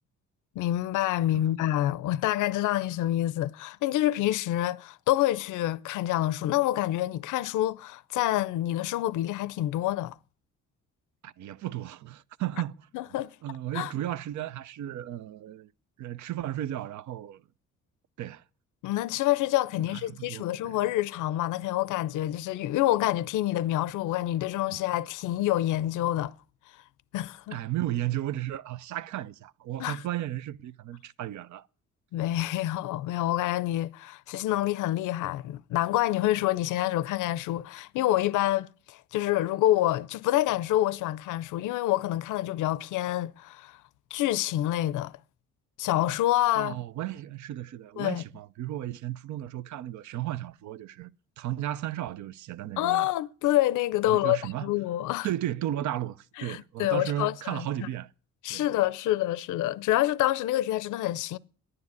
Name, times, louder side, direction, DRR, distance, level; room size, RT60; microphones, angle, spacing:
voice 1, 0.6-10.2 12.9-13.4 13.7-13.9 18.8-26.3 27.1-27.6 29.8-30.0 32.1-43.8 44.1-45.2 45.8-46.8 48.0-48.2 52.8-55.3 56.4-57.9 58.4-61.4, left 14 dB, 85° left, 0.6 m, -27 dB
voice 2, 11.2-15.7 16.0-17.4 18.2-18.4 19.8-20.8 24.7-24.8 27.5-31.7 46.5-53.1 54.0-54.7 55.2-58.1 58.5-58.7, right 13 dB, 70° right, 0.6 m, -34 dB
11.0 x 9.8 x 9.6 m
cardioid pair, 90°, 30 cm